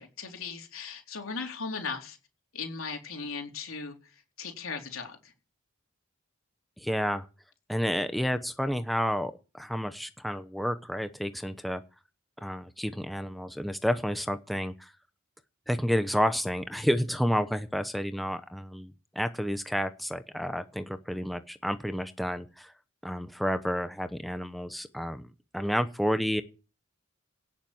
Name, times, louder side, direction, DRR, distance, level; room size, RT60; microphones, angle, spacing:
voice 1, 0.0-2.2 2.5-4.0 4.4-5.3, left 4 dB, 80° left, 4.0 m, -37 dB
voice 2, 6.8-7.3 7.7-11.8 12.4-14.9 15.7-22.7 23.0-25.3 25.5-26.4, equal, ahead, 0.8 m, -30 dB
18.0 x 7.5 x 7.8 m
head